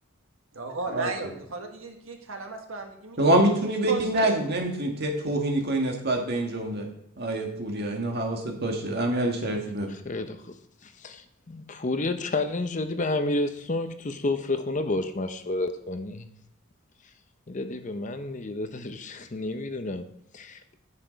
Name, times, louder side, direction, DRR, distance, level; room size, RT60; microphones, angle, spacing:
voice 1, 0.5-3.4 3.9-4.4, right 3 dB, 70° right, 3 dB, 1.6 m, -35 dB
voice 2, 3.2-6.9 7.2-9.9, right 1 dB, 50° right, 1 dB, 1.8 m, -26 dB
voice 3, 9.9-10.6 10.8-16.3 17.5-20.8, left 2 dB, 35° left, 8 dB, 0.7 m, -30 dB
9.8 x 6.8 x 5.2 m, 0.73 s
head